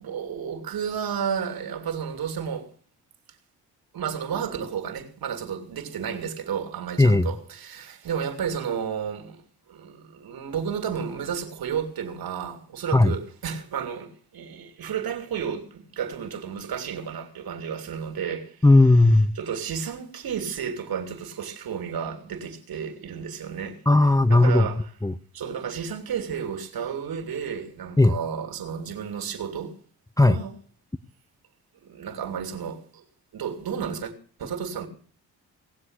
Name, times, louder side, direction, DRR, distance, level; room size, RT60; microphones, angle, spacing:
voice 1, 0.0-2.7 3.9-9.4 9.7-18.6 19.4-23.8 24.3-24.8 25.3-29.7 30.3-30.5 31.8-33.0 33.3-34.1 34.4-34.9, right 7 dB, 65° right, 3.0 m, -32 dB
voice 2, 7.0-7.3 12.9-13.1 18.6-19.4 23.9-24.7 25.0-25.1 28.0-28.2 30.2-30.4, left 2 dB, 10° left, 0.8 m, -16 dB
19.0 x 7.6 x 8.1 m
supercardioid pair, 55°, 38 cm